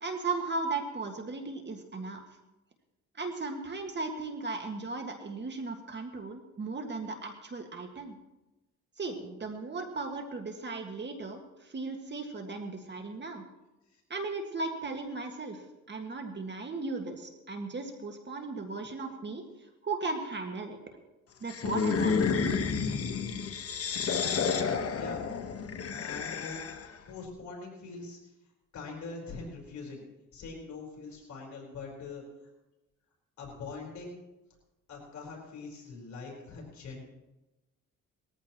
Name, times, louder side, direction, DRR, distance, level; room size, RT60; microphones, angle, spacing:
voice 1, 0.0-2.2 3.2-8.2 9.0-13.4 14.1-15.6 15.9-19.4 19.8-20.8 21.4-22.7, right 3 dB, 35° right, 4 dB, 1.8 m, -36 dB
sound 1, 21.5-27.0, left 6 dB, 50° left, 1.3 m, -30 dB
voice 2, 24.9-25.3 26.0-26.6 27.1-28.2 28.7-30.0 30.3-32.5 33.4-34.2 34.9-37.0, left 4 dB, 70° left, -1 dB, 4.4 m, -43 dB
20.5 x 14.5 x 3.0 m, 1.0 s
cardioid pair, 90°, 30 cm